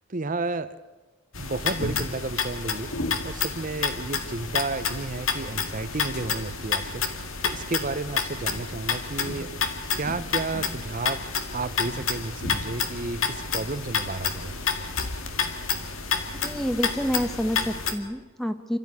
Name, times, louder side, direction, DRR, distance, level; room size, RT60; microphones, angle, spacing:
voice 1, 0.1-0.8 1.4-2.9 3.2-7.1 7.4-9.5 9.9-14.5, right 3 dB, 40° right, 11 dB, 0.8 m, -32 dB
sound 1, 1.3-17.9, left 5 dB, 80° left, 2.1 m, -29 dB
voice 2, 16.4-18.8, equal, ahead, 9 dB, 1.1 m, -28 dB
27.0 x 14.0 x 9.6 m, 1.2 s
head